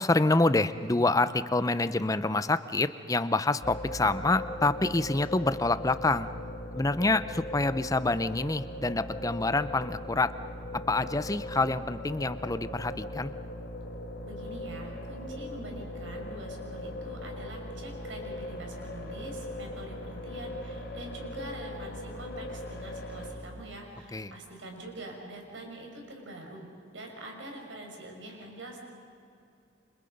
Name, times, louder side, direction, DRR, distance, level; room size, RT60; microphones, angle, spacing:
voice 1, 0.0-6.3 6.7-10.3 10.7-13.3 24.1-24.3, left 2 dB, 20° left, 13 dB, 0.6 m, -27 dB
sound 1, 3.6-23.3, left 1 dB, 60° left, 3.3 m, -39 dB
voice 2, 14.2-26.7 26.9-28.8, right 1 dB, 80° right, 1 dB, 5.6 m, -44 dB
29.0 x 26.5 x 5.4 m, 2.6 s
head